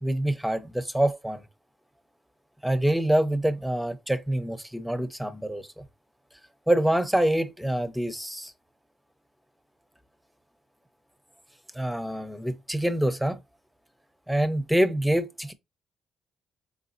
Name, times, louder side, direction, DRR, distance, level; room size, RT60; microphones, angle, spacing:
voice 1, 0.0-1.4 2.6-5.8 6.7-8.5 11.7-13.4 14.3-15.5, right 1 dB, ahead, 0.6 m, -26 dB
4.0 x 3.6 x 2.5 m
cardioid pair, 90°, 0 cm